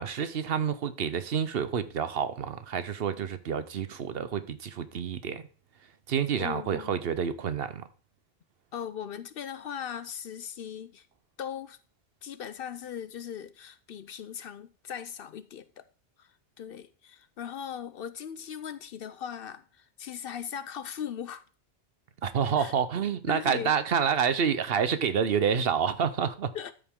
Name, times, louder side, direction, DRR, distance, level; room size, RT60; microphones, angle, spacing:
voice 1, 0.0-5.5 6.1-7.8 22.2-26.5, right 7 dB, 60° right, 0.9 m, -28 dB
voice 2, 6.4-7.1 8.7-11.1 11.4-11.8 12.2-15.8 16.2-16.3 16.6-21.4 22.6-22.7 23.3-23.7 26.5-26.7, left 8 dB, 60° left, 0.7 m, -39 dB
13.0 x 5.2 x 3.6 m
omnidirectional pair, 1.2 m